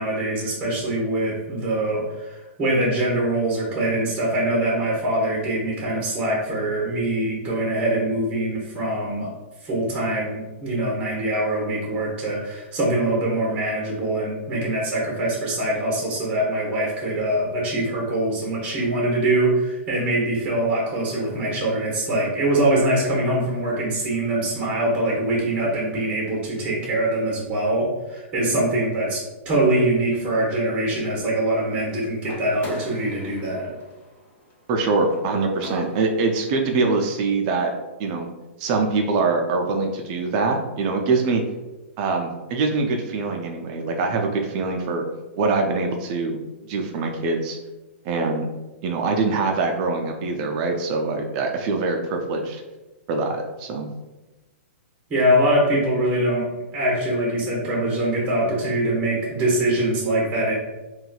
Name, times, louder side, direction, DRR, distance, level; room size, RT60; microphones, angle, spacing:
voice 1, 0.0-9.3 9.6-33.7 55.1-56.5 56.7-60.6, right 1 dB, 15° right, -4 dB, 0.9 m, -23 dB
sound 1, 32.2-36.3, left 1 dB, 20° left, 0.6 m, -39 dB
voice 2, 34.7-37.7 38.0-38.3 38.6-41.4 42.0-45.0 45.4-47.6 48.0-48.5 48.8-52.6 53.1-53.9, right 3 dB, 35° right, 3 dB, 0.4 m, -24 dB
3.9 x 2.3 x 2.3 m, 1.1 s
hypercardioid pair, 150°, 7 cm